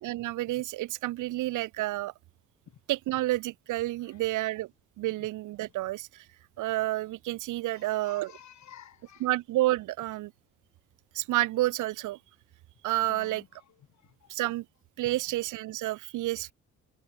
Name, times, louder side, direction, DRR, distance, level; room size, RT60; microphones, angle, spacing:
voice 1, 0.0-2.1 2.9-4.7 5.0-6.2 6.6-8.3 9.2-10.3 11.1-12.2 12.8-13.4 14.3-14.6 15.0-16.5, right 17 dB, 85° right, 1.4 m, -30 dB
voice 2, 7.7-9.3 13.1-14.3 15.0-15.2 16.4-16.5, left 10 dB, 65° left, 5.3 m, -53 dB
cardioid pair, 75°, 30 cm